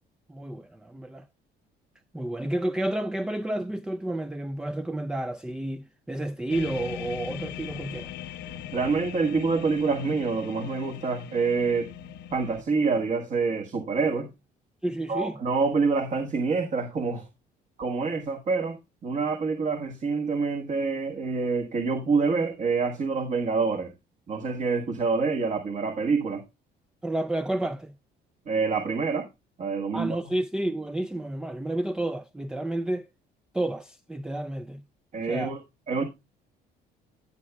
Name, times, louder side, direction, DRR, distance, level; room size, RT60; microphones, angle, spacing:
voice 1, 0.3-1.3 2.1-8.1 14.8-15.4 27.0-28.0 29.9-33.1 33.5-34.8 35.2-35.5, right 1 dB, 5° right, 0.4 m, -30 dB
sound 1, 6.5-12.6, left 10 dB, 80° left, 0.9 m, -40 dB
voice 2, 8.7-11.9 12.3-14.3 15.1-17.2 17.8-18.8 19.0-23.9 24.3-26.4 28.5-29.3 29.6-30.2 35.1-35.6 35.9-36.0, right 4 dB, 45° right, 1.5 m, -26 dB
15.5 x 6.9 x 2.3 m
cardioid pair, 110°, 17 cm